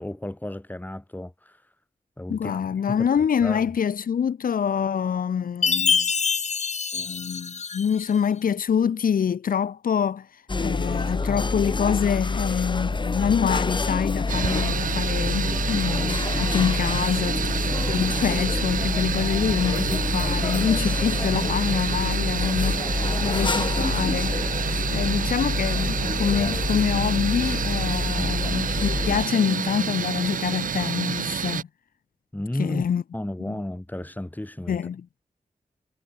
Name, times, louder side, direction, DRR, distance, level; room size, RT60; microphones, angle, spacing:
voice 1, 0.0-1.6 2.2-2.6 2.9-3.1 3.4-3.6 19.9-20.3 28.2-28.3 32.3-32.8 33.1-34.8, left 1 dB, 10° left, 2.3 m, -33 dB
voice 2, 2.3-6.1 6.9-17.5 17.8-31.7 32.6-33.0 33.5-33.6 34.7-35.0, left 7 dB, 90° left, 0.6 m, -26 dB
Chime, 5.6-8.1, left 5 dB, 55° left, 0.7 m, -25 dB
sound 1, 10.5-29.3, left 3 dB, 35° left, 1.1 m, -27 dB
sound 2, 14.3-31.6, right 8 dB, 75° right, 0.4 m, -29 dB
wide cardioid pair, 95°, 14 cm